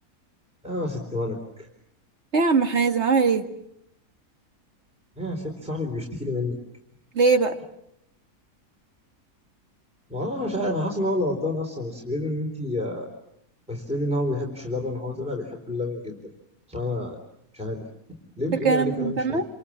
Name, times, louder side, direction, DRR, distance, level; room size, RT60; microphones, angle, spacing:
voice 1, 0.6-1.7 5.2-6.6 10.1-13.1 13.7-16.2 16.7-17.2 17.5-17.8 18.4-19.4, left 1 dB, 5° right, 1 dB, 3.8 m, -29 dB
voice 2, 2.3-3.5 7.1-7.6 18.6-19.4, right 4 dB, 50° right, 6 dB, 2.2 m, -21 dB
30.0 x 27.5 x 7.4 m, 0.79 s
omnidirectional pair, 1.5 m